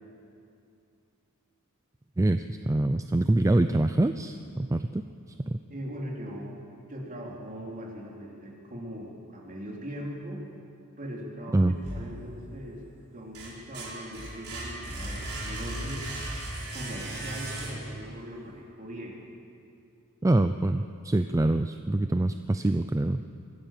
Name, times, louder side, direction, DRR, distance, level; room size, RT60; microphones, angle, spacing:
voice 1, 2.2-5.0 5.5-5.6 11.5-11.7 20.2-23.2, right 2 dB, 15° right, 9 dB, 0.4 m, -25 dB
voice 2, 5.7-10.4 11.0-12.8 13.1-16.1 16.7-19.2, equal, 40° right, -2 dB, 3.6 m, -40 dB
sound 1, 11.8-12.7 13.1-18.1, right 1 dB, 70° right, 5.1 m, -37 dB
23.5 x 15.0 x 7.5 m, 2.6 s
head